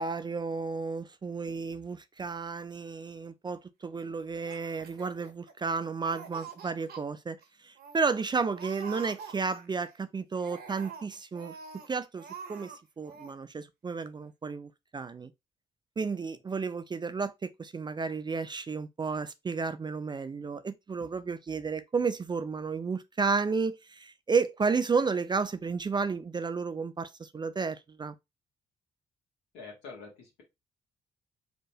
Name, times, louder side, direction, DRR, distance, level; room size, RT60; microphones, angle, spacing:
voice 1, 0.0-7.4 7.6-11.6 11.9-15.3 16.0-28.1, right 4 dB, 25° right, 0.4 m, -32 dB
Laughter, 4.3-5.7 6.0-7.0 7.4-7.5 7.8-8.2 8.5-9.9 10.3-11.9 12.2-12.8 13.0-13.3, right 6 dB, 60° right, 0.7 m, -46 dB
voice 2, 29.5-30.4, left 4 dB, 80° left, 1.2 m, -46 dB
2.8 x 2.2 x 2.7 m
hypercardioid pair, 45°, 19 cm